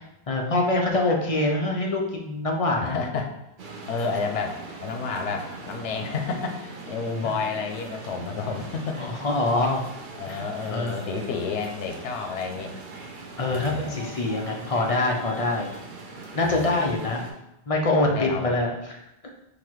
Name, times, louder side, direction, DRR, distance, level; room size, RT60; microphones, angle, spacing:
voice 1, 0.3-3.0 7.2-7.3 9.0-9.8 10.3-10.4 10.7-11.0 13.4-15.7 16.3-17.2 17.7-18.7, left 2 dB, 40° left, 0 dB, 0.5 m, -24 dB
voice 2, 2.8-3.3 3.9-9.0 10.1-12.7 13.5-14.0 16.4-16.9 18.0-18.6, left 5 dB, 90° left, 4 dB, 0.9 m, -30 dB
sound 1, 3.6-17.3, right 3 dB, 55° right, 0.8 m, -41 dB
4.0 x 2.7 x 4.5 m, 0.85 s
omnidirectional pair, 1.1 m